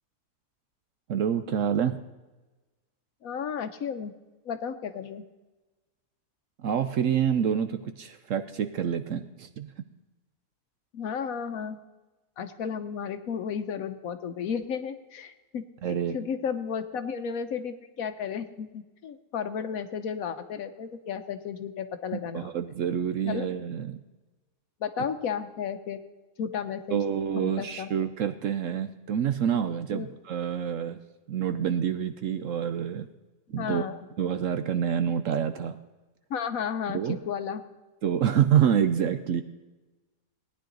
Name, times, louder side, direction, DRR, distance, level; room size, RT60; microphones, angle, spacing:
voice 1, 1.1-2.0 6.6-9.7 15.8-16.2 22.3-24.0 26.9-31.0 31.3-33.1 33.5-33.8 34.2-35.8 36.9-37.2 38.0-39.4, right 8 dB, 65° right, 9 dB, 0.9 m, -27 dB
voice 2, 3.2-4.2 4.4-5.2 10.9-11.8 12.4-15.7 16.1-22.5 23.2-23.5 24.8-26.0 26.4-27.0 27.4-27.9 29.9-30.1 33.5-34.0 36.3-37.6, left 7 dB, 65° left, 10 dB, 1.1 m, -33 dB
17.5 x 10.0 x 3.9 m, 1.2 s
omnidirectional pair, 1.7 m